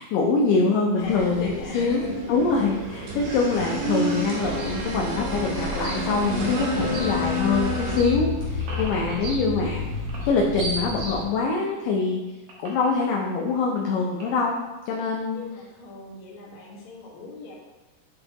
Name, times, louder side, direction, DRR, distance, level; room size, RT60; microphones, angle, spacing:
voice 1, 0.0-1.5 1.7-2.0 2.3-9.8 10.3-12.2 12.6-14.6 14.9-15.4, left 4 dB, 85° left, -1 dB, 1.9 m, -24 dB
voice 2, 1.0-2.2 9.4-9.5 15.3-17.5, left 2 dB, 55° left, -5 dB, 1.6 m, -38 dB
sound 1, 1.0-8.0, equal, 85° right, 3.3 m, -29 dB
sound 2, 4.4-11.2, left 2 dB, 45° right, 1.9 m, -32 dB
sound 3, 5.2-7.5 7.7-9.8 10.1-11.5 11.9-14.5, right 1 dB, 70° right, 1.4 m, -46 dB
9.7 x 4.3 x 2.9 m, 1.1 s
omnidirectional pair, 4.6 m